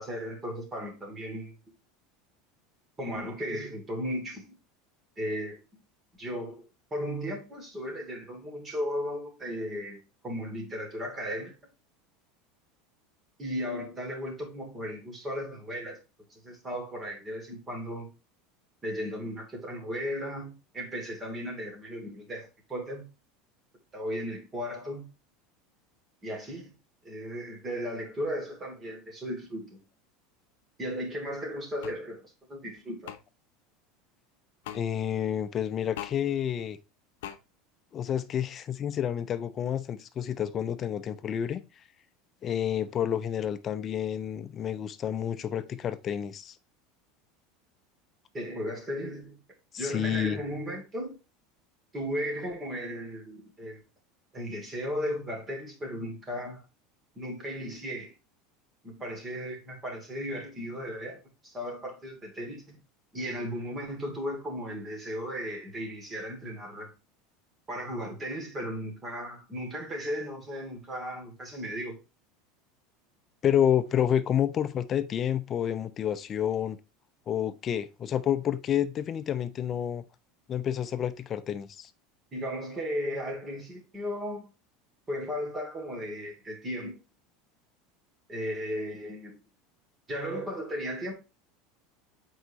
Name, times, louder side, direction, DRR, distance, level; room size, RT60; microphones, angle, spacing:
voice 1, 0.0-1.5 3.0-4.4 5.2-5.6 6.2-6.6 6.9-11.5 13.4-16.0 16.3-18.1 18.8-23.1 23.9-25.1 26.2-26.7 27.0-29.8 30.8-33.1 48.3-49.4 49.8-51.2 51.9-53.8 54.3-56.6 57.1-58.1 58.8-62.8 63.1-66.9 67.7-72.0 82.3-84.5 85.1-87.0 88.3-89.4 90.1-91.1, equal, 20° right, 2.8 m, -35 dB
sound 1, 31.8-32.0 33.1-33.2 34.6-34.8 36.0-36.2 37.2-37.4, left 12 dB, 85° left, 0.7 m, -39 dB
voice 2, 34.7-36.8 37.9-41.6 42.4-46.6 49.7-50.4 73.4-76.8 77.3-80.0 80.5-81.9, left 9 dB, 30° left, 0.6 m, -29 dB
7.9 x 4.7 x 3.1 m
supercardioid pair, 135°, 0 cm